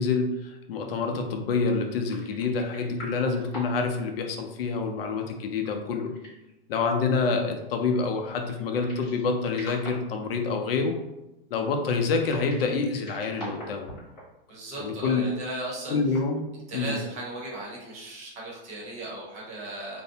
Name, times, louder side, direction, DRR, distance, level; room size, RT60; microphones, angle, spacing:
voice 1, 0.0-6.1 6.7-11.0 11.5-13.9 14.8-15.3 15.9-16.4 16.7-17.0, left 4 dB, 80° left, 4 dB, 0.5 m, -27 dB
sound 1, 2.1-3.9 4.2-4.3 5.4-6.5 8.4-9.3 9.5-10.3 12.2-14.2 14.5-14.6 16.0-16.3, equal, 15° left, 1.1 m, -43 dB
voice 2, 14.5-16.0 16.7-20.0, right 1 dB, 25° right, -4 dB, 0.8 m, -36 dB
2.6 x 2.0 x 2.6 m, 0.95 s
hypercardioid pair, 150°, 29 cm